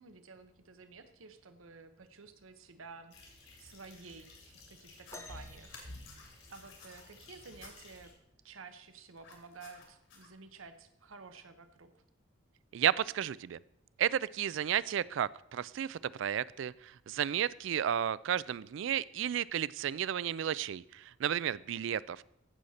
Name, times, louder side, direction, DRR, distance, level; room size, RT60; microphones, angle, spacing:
voice 1, 0.0-5.8 6.5-8.1 8.4-12.0, right 4 dB, 90° right, 10 dB, 1.0 m, -52 dB
sound 1, 3.1-8.1, left 2 dB, 85° left, 4.2 m, -53 dB
sound 2, 4.9-5.2 5.6-7.0 7.6-7.7 9.2-10.3, left 4 dB, 70° left, 2.7 m, -55 dB
sound 3, 5.1-7.0 8.7-8.8 9.6-9.8 10.7-10.8, left 2 dB, 15° left, 0.6 m, -53 dB
voice 2, 12.7-13.6 14.0-22.2, right 9 dB, 70° right, 21 dB, 0.3 m, -33 dB
15.5 x 6.5 x 4.1 m, 0.80 s
head